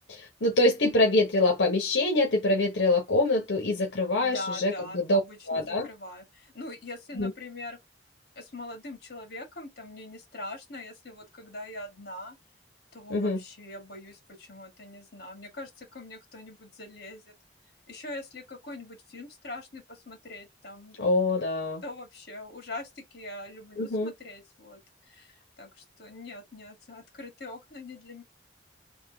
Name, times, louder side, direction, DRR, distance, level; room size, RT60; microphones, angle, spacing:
voice 1, 0.1-5.2 5.5-5.9 7.2-7.3 13.1-13.4 21.0-21.8 23.8-24.1, left 2 dB, 80° left, 1.1 m, -25 dB
voice 2, 4.2-7.8 8.4-12.4 12.9-17.3 17.9-21.1 21.8-28.2, left 2 dB, 60° left, 2.0 m, -42 dB
3.7 x 2.8 x 3.4 m
head